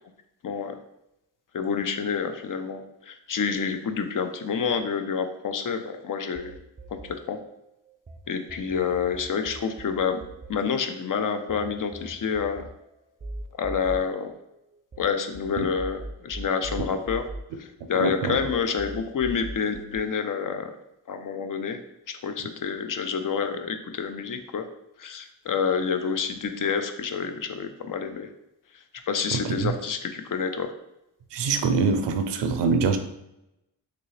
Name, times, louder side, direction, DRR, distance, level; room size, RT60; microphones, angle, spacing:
voice 1, 0.4-0.8 1.5-6.6 6.9-7.4 8.3-10.2 10.5-12.7 13.5-14.3 15.0-17.2 17.6-20.7 21.1-21.8 22.1-24.7 25.0-28.3 28.7-30.7, left 6 dB, 50° left, 8 dB, 0.6 m, -28 dB
sound 1, 6.4-8.2 8.5-15.0 15.4-18.0 18.4-20.0, right 1 dB, 20° right, 0.5 m, -40 dB
voice 2, 18.0-18.4 29.3-29.7 31.3-33.0, right 4 dB, 80° right, 7 dB, 0.6 m, -24 dB
3.7 x 2.9 x 3.2 m, 0.87 s
cardioid pair, 45°, 43 cm